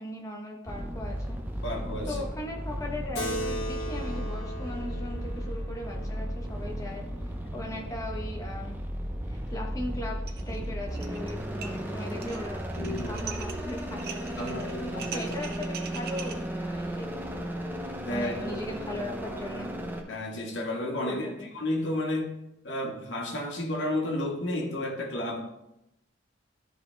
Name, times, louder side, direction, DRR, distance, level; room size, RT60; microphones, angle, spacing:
voice 1, 0.0-1.4 2.0-7.0 7.5-8.8 9.3-12.6 13.1-17.4 18.1-19.7 21.0-21.5, left 1 dB, 15° left, 0 dB, 1.2 m, -39 dB
sound 1, 0.7-20.0, equal, 10° right, 0.7 m, -35 dB
voice 2, 1.6-2.2 9.1-9.2 12.8-13.2 14.4-15.3 18.0-18.6 20.1-21.3 21.5-22.3 22.6-25.5, left 1 dB, 65° left, -1 dB, 1.8 m, -32 dB
Keyboard (musical), 3.2-8.0, equal, 85° left, 1.3 m, -39 dB
sound 2, 10.3-10.6 10.8-11.3 11.6-16.3, right 7 dB, 50° right, 0.8 m, -41 dB
13.0 x 5.1 x 3.5 m, 0.88 s
head